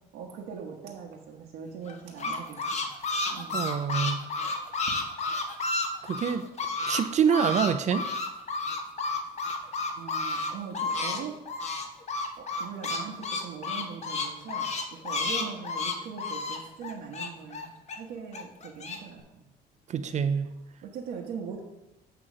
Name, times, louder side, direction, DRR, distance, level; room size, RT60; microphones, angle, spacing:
voice 1, 0.1-2.9 3.3-3.7 3.9-4.2 9.9-11.4 12.4-19.5 19.9-20.5 20.8-21.6, right 6 dB, 80° right, -2 dB, 1.1 m, -41 dB
sound 1, 1.8-7.0 7.3-11.2 11.5-18.0 18.3-19.0, left 3 dB, 40° left, 0.9 m, -31 dB
voice 2, 3.5-4.3 6.1-6.4 6.9-8.0 19.9-20.5, right 7 dB, 45° right, 11 dB, 0.5 m, -26 dB
8.5 x 3.0 x 6.1 m, 0.90 s
cardioid pair, 110°, 17 cm